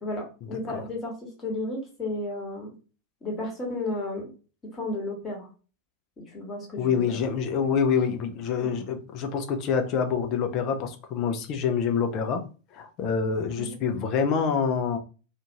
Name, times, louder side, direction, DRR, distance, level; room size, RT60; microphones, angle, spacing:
voice 1, 0.0-1.1 1.4-2.7 3.2-4.3 4.7-5.5 6.3-7.2 8.6-8.9 13.5-13.8, left 2 dB, 20° left, 1.2 m, -33 dB
voice 2, 6.8-12.4 12.7-15.0, left 6 dB, 40° left, 0.5 m, -26 dB
2.5 x 2.4 x 2.9 m
figure-of-eight pair, 90°, 0 cm